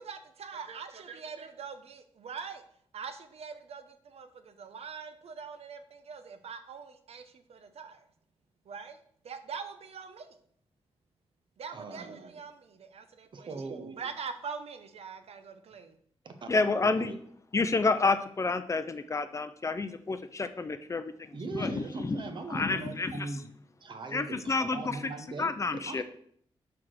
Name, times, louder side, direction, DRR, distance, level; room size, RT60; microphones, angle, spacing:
voice 1, 0.0-2.6 2.9-8.1 8.6-9.0 9.2-10.4 11.6-16.0, right 6 dB, 80° right, 9 dB, 0.8 m, -43 dB
voice 2, 11.7-12.2 13.3-13.9 16.2-17.2 21.3-23.5 23.8-26.0, right 3 dB, 50° right, 7 dB, 0.9 m, -40 dB
voice 3, 16.5-17.1 17.5-22.2 22.5-23.3 24.1-25.0 25.4-26.0, left 3 dB, 30° left, 10 dB, 0.5 m, -29 dB
5.9 x 4.7 x 6.3 m, 0.64 s
wide cardioid pair, 165°, 10 cm